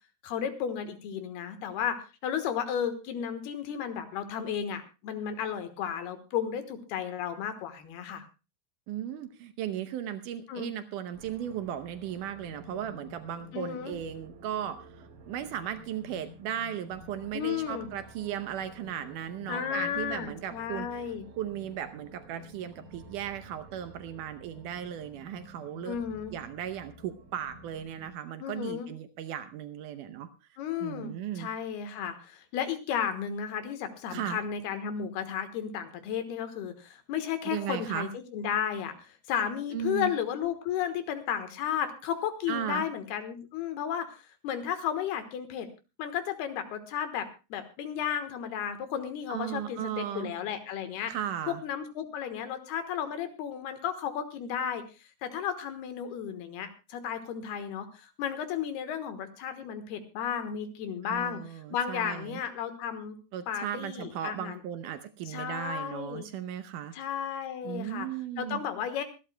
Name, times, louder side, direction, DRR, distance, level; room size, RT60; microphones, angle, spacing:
voice 1, 0.2-8.2 10.5-10.7 13.5-14.0 17.3-17.9 19.5-21.2 25.8-26.4 28.4-28.9 30.6-45.7 46.0-51.1 51.6-63.2 63.5-64.6 65.3-66.3 66.9-68.1 68.4-69.0, left 8 dB, 75° left, 9 dB, 3.1 m, -33 dB
voice 2, 8.9-21.1 21.4-26.0 26.3-30.3 30.8-31.5 34.1-34.4 37.5-38.1 39.7-40.1 42.5-42.9 49.3-50.3 51.1-51.6 61.0-62.4 63.3-66.9 67.6-68.6, right 10 dB, 85° right, 10 dB, 1.8 m, -36 dB
sound 1, 11.1-28.1, right 1 dB, 60° right, 3.5 m, -51 dB
25.5 x 12.5 x 2.2 m, 0.30 s
omnidirectional pair, 4.8 m